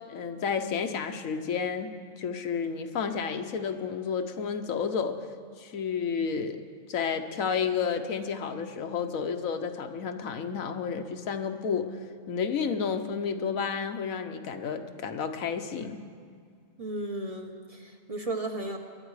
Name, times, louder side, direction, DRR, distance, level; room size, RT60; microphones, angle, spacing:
voice 1, 0.1-5.2 5.6-6.6 6.9-11.9 12.3-16.0, left 6 dB, 85° left, 7 dB, 1.3 m, -31 dB
voice 2, 16.8-18.8, right 2 dB, 30° right, 2 dB, 1.0 m, -34 dB
22.0 x 11.5 x 4.8 m, 2.1 s
omnidirectional pair, 1.4 m